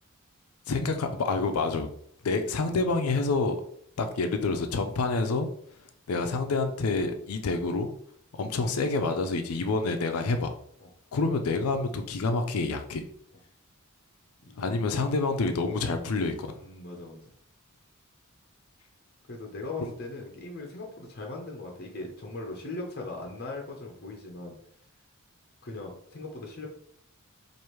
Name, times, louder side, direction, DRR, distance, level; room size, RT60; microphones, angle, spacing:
voice 1, 0.7-1.9 2.2-3.6 4.0-5.5 6.1-7.9 8.3-10.5 11.1-13.0 14.6-16.5 19.8-19.9, left 3 dB, 80° left, 7 dB, 0.5 m, -27 dB
voice 2, 14.4-14.8 16.6-17.3 19.3-24.5 25.6-26.7, left 2 dB, 50° left, 1 dB, 0.7 m, -39 dB
4.8 x 2.6 x 3.0 m, 0.65 s
head